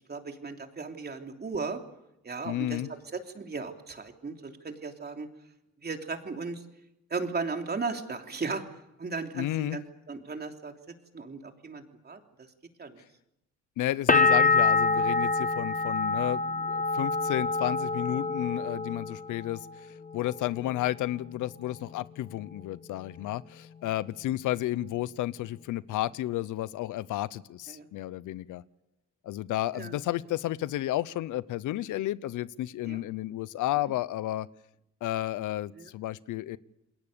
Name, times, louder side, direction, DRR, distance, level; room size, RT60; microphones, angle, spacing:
voice 1, 0.1-1.8 2.2-2.8 3.1-5.3 5.8-6.6 7.1-8.6 9.0-10.7 11.1-12.2 12.8-13.0 15.6-15.7 17.3-17.4 27.7-27.9 29.7-30.0 32.8-33.0 35.7-35.9, right 4 dB, 35° right, 4 dB, 3.2 m, -36 dB
voice 2, 2.4-2.9 9.3-9.8 13.8-19.9 20.1-28.6 29.2-34.5 35.0-36.6, left 14 dB, 80° left, 19 dB, 0.8 m, -32 dB
sound 1, 14.1-19.7 20.0-20.8, left 3 dB, 25° left, 1.3 m, -26 dB
28.5 x 21.0 x 6.9 m, 0.88 s
cardioid pair, 90°, 30 cm